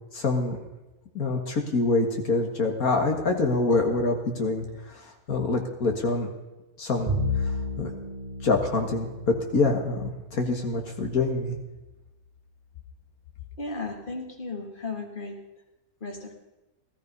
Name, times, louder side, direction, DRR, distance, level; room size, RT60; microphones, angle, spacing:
voice 1, 0.1-0.6 1.1-6.3 6.8-7.9 8.4-11.6, left 3 dB, 75° left, 3 dB, 2.1 m, -26 dB
Bowed string instrument, 7.1-11.6, left 2 dB, 30° right, 1.3 m, -33 dB
voice 2, 13.6-15.4 16.0-16.3, left 3 dB, 35° left, 2 dB, 2.3 m, -35 dB
17.5 x 14.0 x 5.4 m, 1.0 s
omnidirectional pair, 1.5 m